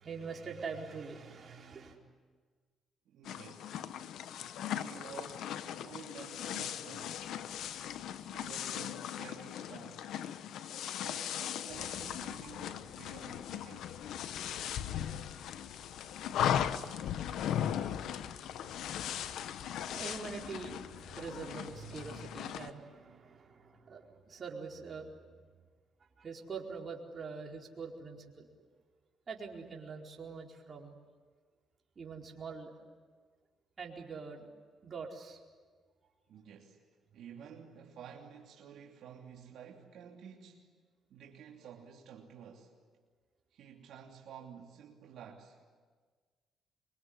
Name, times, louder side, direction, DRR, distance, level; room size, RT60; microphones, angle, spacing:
voice 1, 0.0-2.0 14.3-25.1 26.2-28.5 29.3-31.0 32.0-32.7 33.8-34.5 34.8-35.4, right 5 dB, 40° right, 4.5 m, -45 dB
voice 2, 3.1-3.8 4.7-7.2 8.3-10.1 10.9-14.0 36.3-36.8 37.1-40.7 41.1-42.7 43.5-45.6, right 7 dB, 75° right, 3.0 m, -51 dB
sound 1, 3.2-22.7, left 10 dB, 80° left, 1.1 m, -38 dB
25.5 x 23.5 x 9.7 m
cardioid pair, 90°, 0 cm